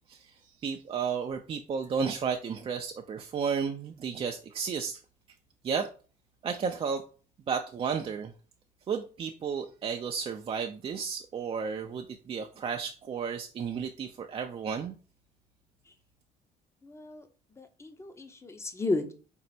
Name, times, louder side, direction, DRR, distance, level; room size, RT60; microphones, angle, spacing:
voice 1, 0.1-5.0 5.6-5.9 6.4-7.0 7.5-8.3 8.9-15.0, right 6 dB, 35° right, 4 dB, 0.4 m, -33 dB
voice 2, 16.8-17.3 17.6-19.1, left 2 dB, 15° left, 8 dB, 0.6 m, -33 dB
4.4 x 2.0 x 4.1 m, 0.37 s
cardioid pair, 110°, 17 cm